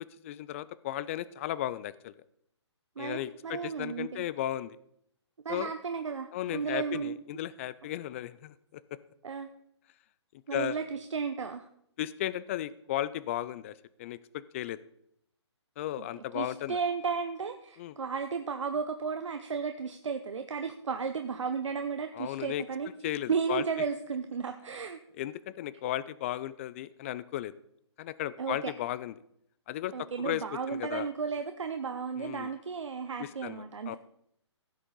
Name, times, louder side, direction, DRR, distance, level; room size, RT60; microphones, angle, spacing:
voice 1, 0.2-2.1 3.0-4.8 5.5-5.7 6.3-8.8 10.5-10.8 12.0-14.8 15.8-16.8 17.8-17.9 22.1-22.6 23.0-23.6 25.2-27.5 28.0-29.1 29.7-30.4 30.7-31.1 32.2-32.5 33.2-34.0, left 13 dB, 25° left, 17 dB, 0.4 m, -35 dB
voice 2, 3.0-4.2 5.4-7.2 9.2-9.5 10.5-11.7 16.0-22.9 23.3-25.0 28.4-28.7 29.9-34.0, right 5 dB, 85° right, 7 dB, 0.8 m, -34 dB
15.5 x 6.5 x 3.9 m, 0.73 s
hypercardioid pair, 145°, 15 cm